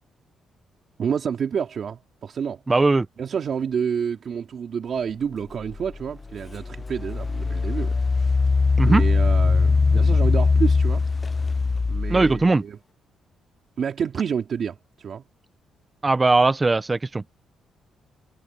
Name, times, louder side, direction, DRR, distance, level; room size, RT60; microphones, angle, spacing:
voice 1, 1.0-2.6 3.2-8.4 8.9-11.1 11.9-12.8 13.8-15.2, right 7 dB, 45° right, 3.5 m, -29 dB
voice 2, 2.7-3.1 8.8-9.0 12.1-12.6 16.0-17.2, right 3 dB, 15° right, 0.7 m, -19 dB
Engine, 5.8-5.9 6.5-12.4, left 4 dB, 20° left, 0.6 m, -21 dB
cardioid pair, 145°, 0 cm